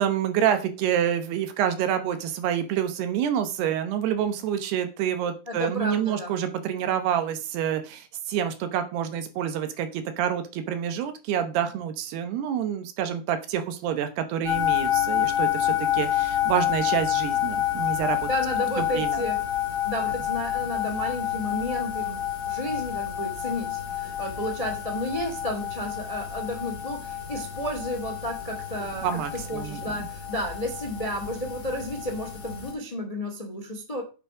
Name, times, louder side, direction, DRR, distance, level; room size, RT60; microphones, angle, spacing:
voice 1, 0.0-18.3 18.8-19.2 29.0-30.1, right 9 dB, 80° right, 8 dB, 3.1 m, -27 dB
voice 2, 5.5-6.3 18.3-19.4 19.8-34.0, left 1 dB, 65° left, 4 dB, 0.3 m, -32 dB
sound 1, 14.4-32.7, left 11 dB, 30° left, 2.4 m, -29 dB
9.8 x 6.7 x 4.9 m, 0.33 s
omnidirectional pair, 4.6 m